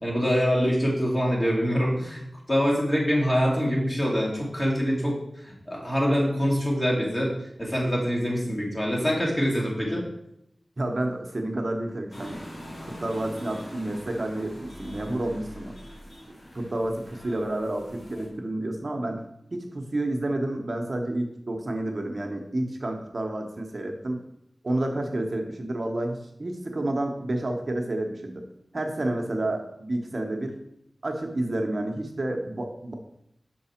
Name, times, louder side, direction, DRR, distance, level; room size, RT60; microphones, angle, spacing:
voice 1, 0.0-2.2 2.5-5.2 5.7-7.3 7.6-10.0, equal, 30° left, -3 dB, 2.4 m, -24 dB
voice 2, 10.8-12.4 12.7-15.7 16.3-19.2 19.5-24.2 24.6-28.4 28.7-30.6 31.0-32.9, right 1 dB, 50° right, 3 dB, 0.8 m, -30 dB
sound 1, 12.1-18.3, equal, 70° left, 1.7 m, -43 dB
5.7 x 4.7 x 4.3 m, 0.78 s
wide cardioid pair, 50°, 0 cm